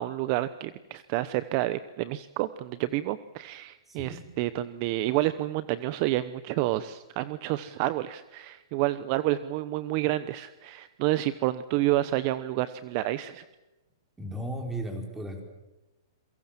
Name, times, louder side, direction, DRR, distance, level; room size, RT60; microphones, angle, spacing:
voice 1, 0.0-13.4, right 15 dB, 40° right, 14 dB, 0.9 m, -29 dB
voice 2, 3.9-4.3 14.2-15.4, right 1 dB, 5° right, 3 dB, 4.5 m, -35 dB
27.5 x 23.0 x 7.5 m, 0.99 s
hypercardioid pair, 150°, 2 cm